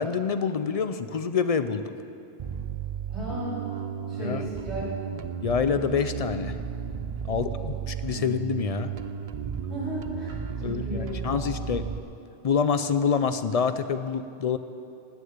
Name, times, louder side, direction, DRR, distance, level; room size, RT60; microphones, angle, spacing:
voice 1, 0.0-1.9 4.2-4.4 5.4-6.6 7.3-8.9 10.6-11.8 12.4-14.6, left 6 dB, 50° left, 11 dB, 0.5 m, -26 dB
Bass guitar, 2.4-12.0, right 7 dB, 50° right, 0.4 m, -34 dB
voice 2, 3.1-5.2 7.3-7.8 8.1-8.3 9.7-11.4, equal, 90° right, -9 dB, 4.7 m, -36 dB
16.0 x 6.6 x 9.5 m, 2.6 s
omnidirectional pair, 1.1 m